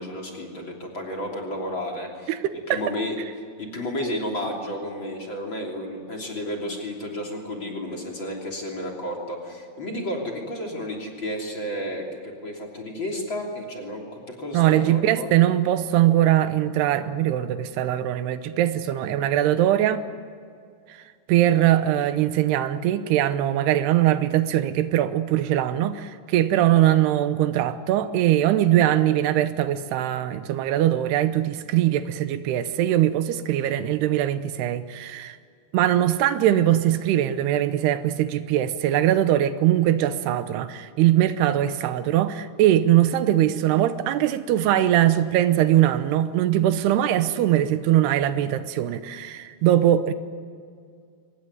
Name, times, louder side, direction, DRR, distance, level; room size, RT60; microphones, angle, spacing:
voice 1, 0.0-2.3 2.7-3.2 3.6-15.3, left 1 dB, 30° left, 3.3 m, -32 dB
voice 2, 14.5-20.0 21.3-35.4 35.7-50.1, right 12 dB, 80° right, 2.9 m, -21 dB
24.0 x 20.0 x 9.6 m
omnidirectional pair, 4.7 m